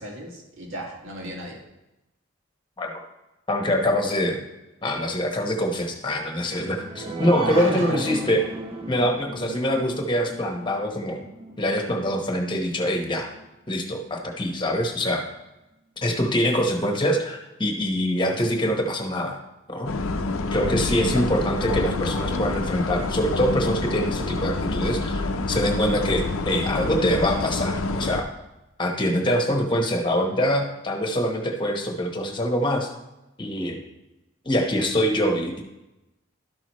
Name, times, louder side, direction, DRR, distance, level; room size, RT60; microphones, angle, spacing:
voice 1, 0.0-1.6 7.4-8.0 21.1-21.3, right 1 dB, 75° right, -1 dB, 1.8 m, -35 dB
voice 2, 3.5-4.4 4.8-8.4 8.9-11.2 11.6-13.3 13.7-15.3 16.0-19.4 19.7-19.9 20.5-28.3 28.8-32.9 33.4-33.8 34.4-35.6, equal, 25° left, 2 dB, 1.1 m, -24 dB
sound 1, 6.4-13.5 13.9-14.0 14.4-14.5, right 2 dB, 25° right, 0.6 m, -36 dB
sound 2, 19.9-28.2, left 3 dB, 85° left, 0.6 m, -27 dB
12.0 x 5.8 x 3.1 m, 0.96 s
head